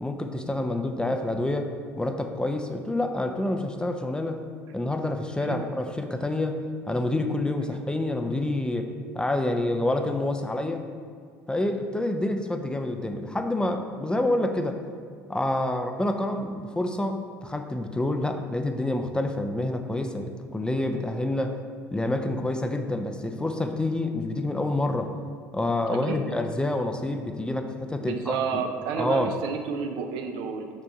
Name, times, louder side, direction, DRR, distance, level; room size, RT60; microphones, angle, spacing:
voice 1, 0.0-1.7 2.0-4.4 4.7-6.6 6.9-10.8 11.5-14.8 15.3-21.6 21.9-25.1 25.5-28.6 29.0-29.3, left 1 dB, 10° left, 5 dB, 0.5 m, -28 dB
voice 2, 25.9-26.2 28.0-30.7, right 6 dB, 60° right, 5 dB, 0.6 m, -31 dB
5.2 x 3.5 x 5.5 m, 2.2 s
hypercardioid pair, 65°, 9 cm